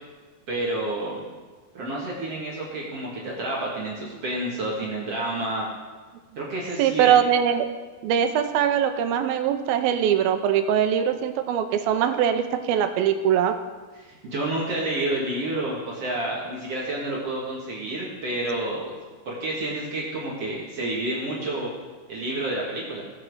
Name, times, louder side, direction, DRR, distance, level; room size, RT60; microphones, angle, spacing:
voice 1, 0.5-1.2 1.7-5.7 6.4-7.1 14.0-18.9 19.3-21.7 22.1-23.0, right 1 dB, 45° right, -5 dB, 2.7 m, -29 dB
voice 2, 6.8-7.7 8.0-13.5, right 9 dB, 85° right, 8 dB, 2.6 m, -22 dB
18.5 x 7.5 x 4.9 m, 1.4 s
omnidirectional pair, 4.4 m